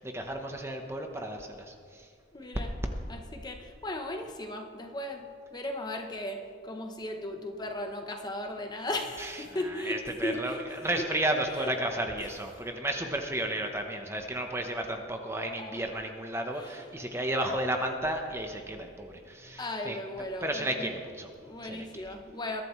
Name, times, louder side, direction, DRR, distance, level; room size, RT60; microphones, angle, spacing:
voice 1, 0.0-1.7 9.9-10.5 10.8-20.0 20.4-21.3 21.6-21.9, right 1 dB, 15° right, 4 dB, 0.9 m, -32 dB
voice 2, 2.3-2.7 3.1-11.1 11.5-11.7 12.2-12.3 15.6-15.8 16.5-16.8 19.5-20.9 21.4-22.6, left 1 dB, 20° left, 4 dB, 0.8 m, -37 dB
21.5 x 11.5 x 3.2 m, 2.1 s
head